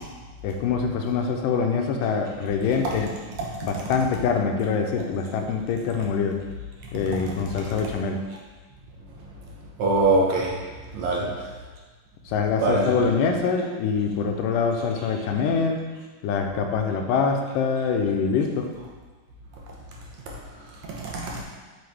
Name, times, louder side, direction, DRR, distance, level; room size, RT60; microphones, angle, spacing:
voice 1, 0.4-3.1 3.6-6.4 6.9-8.2 11.2-11.3 12.3-15.8 16.2-18.7, left 5 dB, 90° left, 4 dB, 2.3 m, -24 dB
voice 2, 9.8-10.6 10.9-11.3 12.6-13.1 20.9-21.4, right 2 dB, 70° right, -2 dB, 2.0 m, -23 dB
7.8 x 5.6 x 3.5 m, 1.4 s
omnidirectional pair, 3.8 m